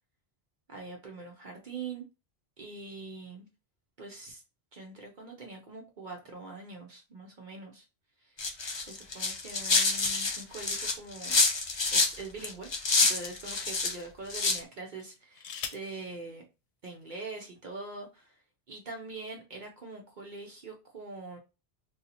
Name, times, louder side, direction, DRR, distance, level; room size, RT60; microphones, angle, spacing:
voice 1, 0.7-2.0 2.6-3.5 4.0-4.4 4.7-7.8 8.2-8.4 8.9-11.4 11.9-12.7 13.1-16.5 16.8-18.3 18.7-21.4, right 3 dB, 50° right, 1 dB, 0.8 m, -43 dB
sound 1, 8.4-12.2 12.4-14.0 14.3-14.6, left 3 dB, 35° left, 0.5 m, -27 dB
sound 2, 11.2-12.4 13.2-13.3 14.9-16.0 17.1-17.2 17.5-17.9, left 7 dB, 85° left, 0.8 m, -44 dB
2.7 x 2.4 x 4.0 m, 0.28 s
omnidirectional pair, 1.1 m